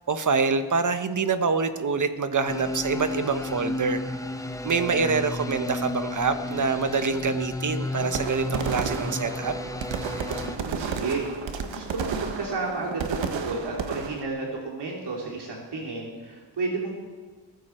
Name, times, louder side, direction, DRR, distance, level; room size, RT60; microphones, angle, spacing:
voice 1, 0.1-4.0 4.6-9.5, right 4 dB, 45° right, 10 dB, 1.3 m, -26 dB
sound 1, 2.5-10.6, left 1 dB, 5° left, 1.1 m, -32 dB
sound 2, 8.0-14.2, right 6 dB, 85° right, 1.5 m, -32 dB
voice 2, 10.4-11.3 11.6-16.9, right 3 dB, 65° right, -1 dB, 3.1 m, -32 dB
21.0 x 15.0 x 4.5 m, 1.5 s
cardioid pair, 90°, 44 cm